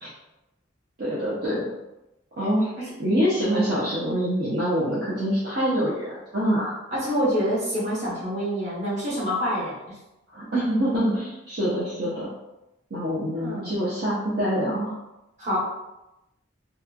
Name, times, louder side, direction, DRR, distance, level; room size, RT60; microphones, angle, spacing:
voice 1, 1.0-1.7 2.4-6.8 10.3-12.3 12.9-15.0, equal, 55° right, -9 dB, 0.6 m, -25 dB
voice 2, 6.9-9.7 13.3-13.8 15.4-15.6, equal, 35° right, -8 dB, 1.1 m, -26 dB
2.9 x 2.2 x 2.4 m, 0.93 s
head